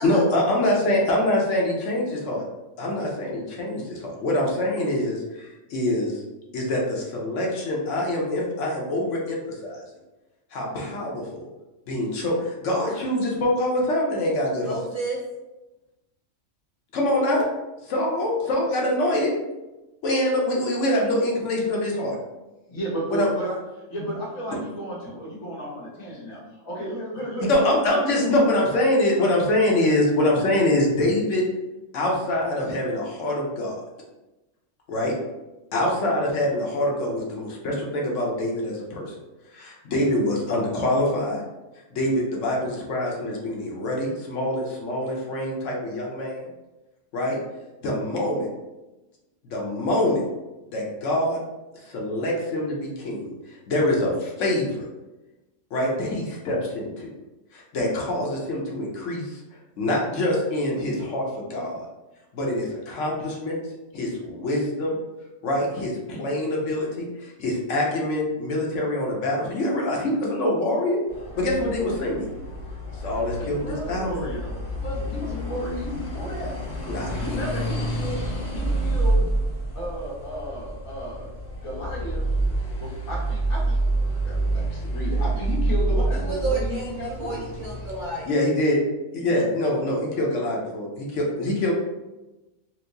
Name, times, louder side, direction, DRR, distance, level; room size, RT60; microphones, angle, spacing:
voice 1, 0.0-2.4 2.8-6.2 6.5-9.8 10.5-11.4 11.9-14.8 16.9-17.5 17.8-19.3 20.0-22.1 23.1-23.3 24.0-24.1 27.5-31.4 31.9-33.7 34.9-35.1 35.7-39.2 39.5-41.4 41.9-46.4 47.1-47.4 47.8-48.5 49.5-50.2 50.7-51.4 51.8-54.8 55.7-57.1 57.5-59.4 59.8-61.9 62.3-63.6 63.9-64.9 65.4-71.0 71.4-72.3 73.0-73.6 73.9-74.2 76.9-77.2 88.2-88.8 89.1-91.8, left 1 dB, 65° left, -2 dB, 1.0 m, -25 dB
voice 2, 14.6-15.2 86.1-88.4, right 3 dB, 65° right, -4 dB, 0.5 m, -31 dB
voice 3, 22.7-23.6 23.9-28.3 73.4-76.5 77.1-78.2 78.5-79.2 79.8-81.3 81.6-82.2 82.8-83.8 84.0-87.6, equal, 90° left, -8 dB, 1.7 m, -33 dB
sound 1, 71.1-88.2, right 2 dB, 40° left, 0.9 m, -28 dB
4.4 x 2.0 x 2.6 m, 1.0 s
omnidirectional pair, 1.4 m